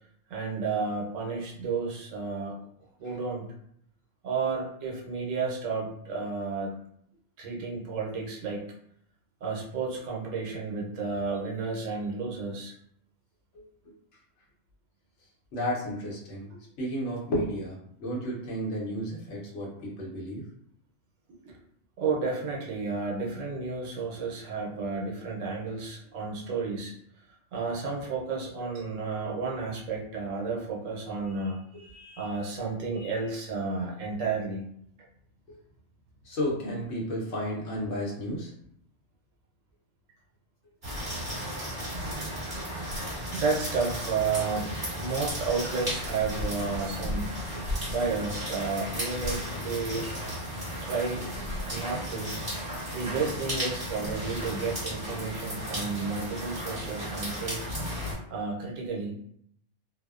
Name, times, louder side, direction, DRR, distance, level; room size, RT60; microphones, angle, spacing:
voice 1, 0.3-2.6 3.0-3.4 4.2-6.7 7.4-8.7 9.4-12.7 21.3-21.6 22.0-26.9 27.5-34.7 43.3-47.4 47.8-50.1 50.8-51.3 51.7-52.4 52.9-57.6 58.3-59.1, right 4 dB, 80° right, -2 dB, 1.0 m, -32 dB
voice 2, 15.5-16.5 16.8-20.4 36.2-38.5, equal, 65° left, -4 dB, 1.1 m, -32 dB
sound 1, 40.8-58.1, equal, 25° right, 1.4 m, -34 dB
2.6 x 2.0 x 2.3 m, 0.70 s
omnidirectional pair, 1.3 m